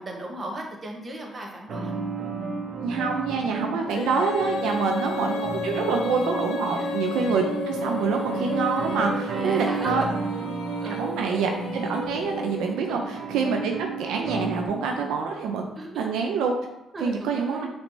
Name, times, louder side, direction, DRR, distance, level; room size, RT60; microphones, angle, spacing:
voice 1, 0.0-2.0 3.5-3.8 4.7-5.0 6.7-7.1 9.3-10.1 10.8-11.0 12.9-13.2 14.9-15.1 15.8-16.2 16.9-17.7, right 1 dB, 35° right, 0 dB, 1.1 m, -37 dB
sound 1, 1.7-14.7, right 4 dB, 65° right, 0.9 m, -32 dB
voice 2, 2.8-10.0 10.9-13.7 14.0-15.6 16.0-16.5 17.0-17.7, right 5 dB, 90° right, 2 dB, 0.5 m, -26 dB
Female singing, 3.9-13.0, left 5 dB, 85° left, 0.5 m, -34 dB
6.0 x 3.2 x 2.7 m, 0.88 s
cardioid pair, 90°, 0 cm